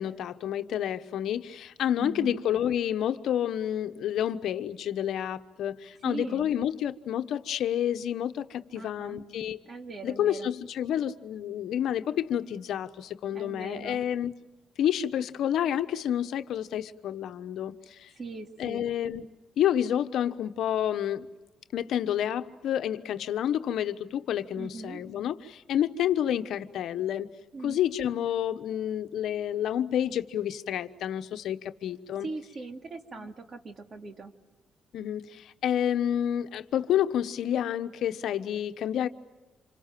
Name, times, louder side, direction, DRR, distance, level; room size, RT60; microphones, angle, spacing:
voice 1, 0.0-9.6 10.0-14.3 14.8-18.1 18.6-19.2 19.6-21.3 21.7-27.3 27.6-32.3 33.2-33.3 34.9-39.1, left 10 dB, 75° left, 1.1 m, -29 dB
voice 2, 2.0-2.4 6.0-6.5 8.7-9.2 9.7-10.5 13.3-14.0 18.2-18.9 24.6-25.0 27.5-27.8 32.2-34.3, right 3 dB, 40° right, 2.5 m, -40 dB
28.5 x 27.0 x 7.6 m
cardioid pair, 90°, 0 cm